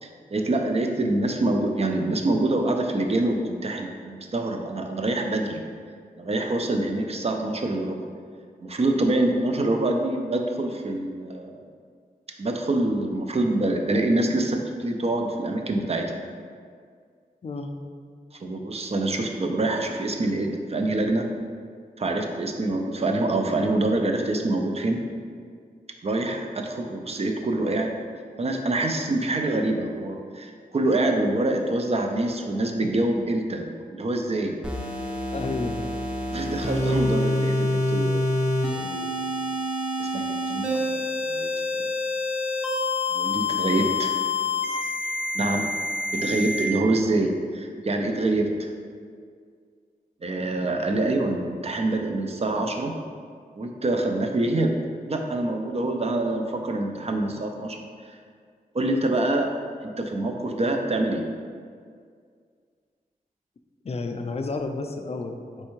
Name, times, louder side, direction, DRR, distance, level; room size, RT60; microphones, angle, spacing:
voice 1, 0.0-5.6 6.2-8.0 8.6-11.6 12.4-16.2 18.3-21.2 22.0-25.0 26.0-27.9 28.4-34.5 36.3-38.3 38.7-39.2 40.0-41.9 43.1-44.1 45.3-45.7 46.1-48.7 50.2-53.0 53.6-54.7 55.1-57.8 58.0-58.2 58.7-59.6 59.8-61.2, right 2 dB, 40° right, 3 dB, 0.5 m, -26 dB
sound 1, 34.6-46.6, left 2 dB, 5° right, 0.7 m, -27 dB
voice 2, 35.3-35.8 63.8-65.7, left 3 dB, 40° left, 5 dB, 0.4 m, -31 dB
4.4 x 3.2 x 3.1 m, 2.1 s
wide cardioid pair, 65°, 16 cm